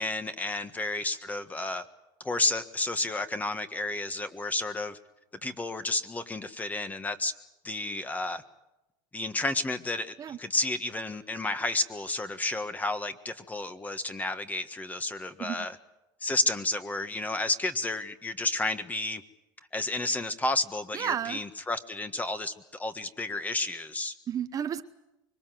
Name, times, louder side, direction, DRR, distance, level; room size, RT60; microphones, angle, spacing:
voice 1, 0.0-1.8 2.2-5.0 5.4-7.3 7.6-8.4 9.1-15.8 16.2-19.2 19.7-22.5 22.8-24.1, left 2 dB, 15° left, 10 dB, 1.5 m, -31 dB
voice 2, 20.9-21.4 24.3-24.8, right 9 dB, 30° right, 10 dB, 0.9 m, -32 dB
25.0 x 21.5 x 7.8 m, 0.96 s
supercardioid pair, 105°, 11 cm